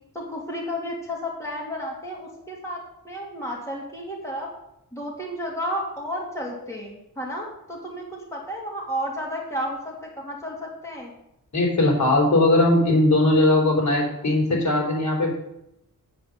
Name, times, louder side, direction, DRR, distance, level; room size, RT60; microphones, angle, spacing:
voice 1, 0.1-4.5 4.9-11.1, equal, 10° left, -3 dB, 2.5 m, -32 dB
voice 2, 11.5-15.3, left 2 dB, 50° left, -1 dB, 3.7 m, -19 dB
8.5 x 8.0 x 6.6 m, 0.83 s
wide cardioid pair, 145°, 35 cm